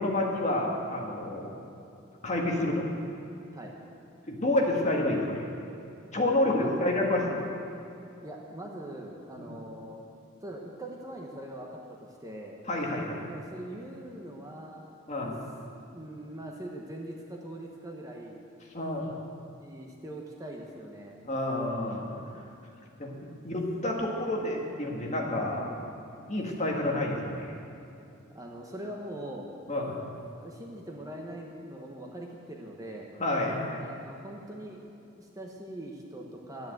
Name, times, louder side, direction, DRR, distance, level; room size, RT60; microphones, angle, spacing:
voice 1, 0.0-1.5 2.2-2.9 4.3-5.4 6.1-7.4 9.4-9.5 12.7-13.2 15.1-15.4 18.7-19.1 21.2-22.2 23.0-23.1 23.4-25.6 26.3-27.5 29.7-30.0 33.2-33.8, left 1 dB, 35° left, -1 dB, 1.7 m, -29 dB
voice 2, 8.2-10.0 10.4-12.6 13.2-14.9 15.2-15.3 15.9-18.4 19.5-21.2 25.2-26.2 28.3-29.5 30.3-33.1 33.8-36.7, right 1 dB, 15° right, 0 dB, 1.1 m, -42 dB
11.5 x 9.9 x 7.8 m, 2.7 s
head